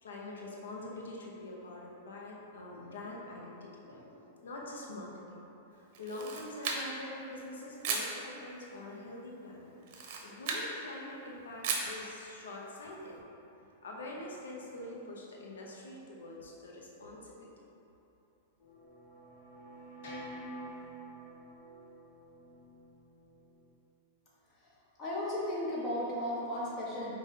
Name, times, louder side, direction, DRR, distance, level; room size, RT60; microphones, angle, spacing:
voice 1, 0.0-5.4 5.7-9.7 10.0-13.2 13.8-17.5, left 1 dB, 85° left, -2 dB, 0.8 m, -45 dB
Camera, 5.9-7.1 7.8-8.1 9.8-10.7 11.6-12.0, right 4 dB, 55° right, 0.6 m, -35 dB
sound 1, 18.6-23.7, right 1 dB, 70° left, 1.1 m, -48 dB
voice 2, 24.5-27.1, left 1 dB, 35° left, -5 dB, 1.2 m, -35 dB
5.0 x 2.5 x 4.1 m, 3.0 s
hypercardioid pair, 120°, 0 cm